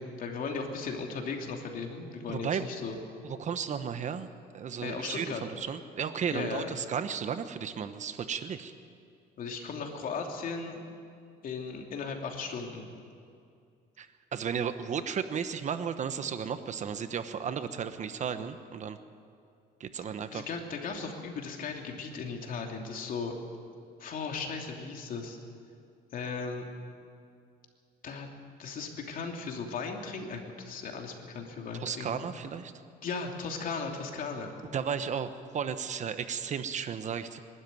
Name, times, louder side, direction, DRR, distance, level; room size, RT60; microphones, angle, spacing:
voice 1, 0.0-3.0 4.8-5.4 6.3-6.7 9.4-10.8 11.4-12.9 20.3-23.3 24.0-25.4 26.1-26.7 28.0-28.3 28.6-32.2 33.0-34.5, left 5 dB, 55° left, 2 dB, 2.9 m, -36 dB
voice 2, 2.3-2.7 3.2-4.3 4.5-8.7 14.0-19.0 19.8-20.5 31.7-32.7 34.7-37.4, right 7 dB, 45° right, 10 dB, 1.1 m, -34 dB
22.5 x 12.5 x 9.4 m, 2.4 s
cardioid pair, 110°, 17 cm